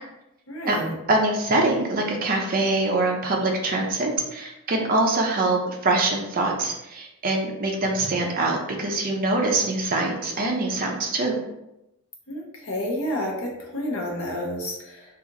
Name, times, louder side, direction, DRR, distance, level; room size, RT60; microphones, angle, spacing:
voice 1, 0.5-0.9 12.3-15.1, left 1 dB, 60° left, -1 dB, 0.7 m, -30 dB
voice 2, 1.1-11.4, right 2 dB, 40° right, 1 dB, 0.5 m, -24 dB
2.8 x 2.4 x 2.5 m, 0.88 s
head